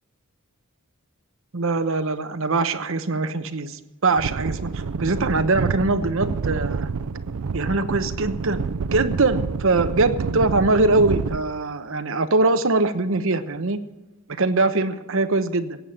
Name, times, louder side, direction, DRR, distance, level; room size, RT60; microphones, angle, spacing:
voice 1, 1.5-6.9 7.5-8.6 8.9-13.8 14.4-15.8, right 3 dB, 60° right, 10 dB, 1.0 m, -22 dB
sound 1, 4.2-11.4, right 5 dB, 90° right, 0.5 m, -28 dB
15.0 x 8.8 x 7.8 m, 1.1 s
head